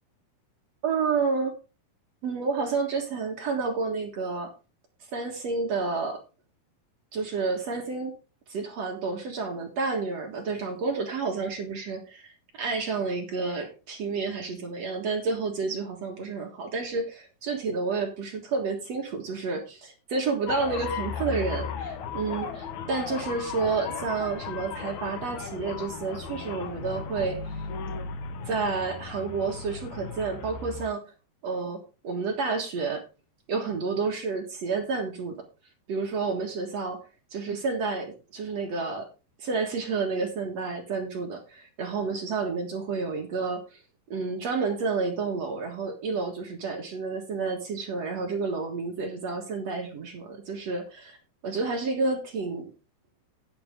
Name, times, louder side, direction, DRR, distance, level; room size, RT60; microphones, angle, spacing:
voice 1, 0.8-1.6 2.2-4.5 5.1-6.2 7.1-8.1 8.5-12.3 12.6-27.4 28.5-31.0 31.4-33.1 33.5-35.5 35.9-37.0 37.3-39.1 39.4-43.8 44.1-51.2 51.4-52.7, right 4 dB, 55° right, 2 dB, 2.2 m, -30 dB
sound 1, 20.5-30.9, left 6 dB, 70° left, 1.9 m, -36 dB
10.5 x 9.8 x 3.6 m, 0.30 s
omnidirectional pair, 4.7 m